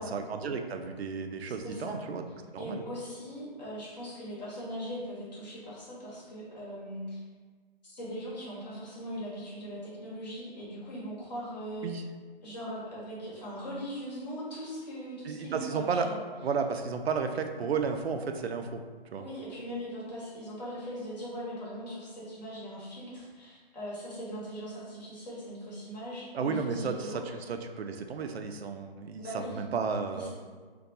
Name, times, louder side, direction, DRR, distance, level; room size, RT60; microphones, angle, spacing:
voice 1, 0.0-2.3 2.5-2.8 11.8-12.0 15.3-16.1 16.4-18.8 19.1-19.2 26.3-30.3, right 5 dB, 85° right, 6 dB, 0.5 m, -33 dB
voice 2, 1.6-2.0 2.6-7.2 7.8-11.9 12.4-16.3 19.2-27.3 29.2-29.6 30.1-30.3, equal, 45° left, -7 dB, 1.2 m, -40 dB
2.6 x 2.2 x 4.0 m, 1.5 s
hypercardioid pair, 165°, 30 cm